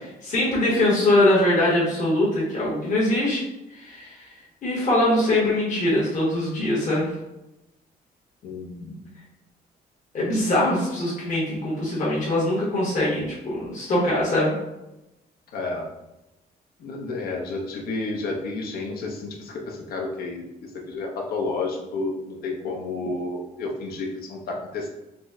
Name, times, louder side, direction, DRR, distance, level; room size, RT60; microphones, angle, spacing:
voice 1, 0.0-3.4 3.7-4.2 4.6-7.1 10.1-14.5, left 1 dB, 50° left, -6 dB, 1.2 m, -22 dB
voice 2, 8.4-9.0 15.5-15.9 16.8-24.9, left 3 dB, 65° left, 0 dB, 0.7 m, -31 dB
4.0 x 2.0 x 3.5 m, 0.93 s
cardioid pair, 130°, 17 cm